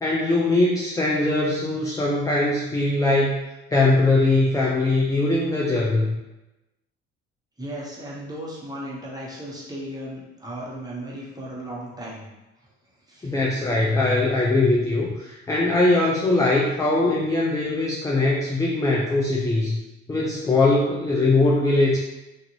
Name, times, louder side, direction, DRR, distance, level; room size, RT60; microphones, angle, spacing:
voice 1, 0.0-3.3 3.7-6.1 13.2-19.8 20.1-22.0, left 2 dB, 10° left, -4 dB, 0.5 m, -21 dB
voice 2, 7.6-12.3 13.1-13.3, right 1 dB, 10° right, -5 dB, 1.1 m, -35 dB
2.5 x 2.5 x 3.0 m, 0.99 s
hypercardioid pair, 65°, 32 cm